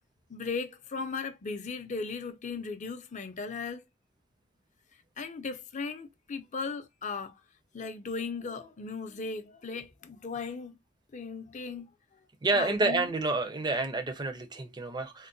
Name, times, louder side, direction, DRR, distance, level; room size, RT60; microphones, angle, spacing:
voice 1, 0.3-3.8 5.2-7.4 7.7-10.8 11.1-12.2 12.5-13.1, left 4 dB, 40° left, 0.5 m, -37 dB
voice 2, 12.4-15.3, right 2 dB, 20° right, 0.5 m, -29 dB
3.6 x 2.1 x 2.5 m
head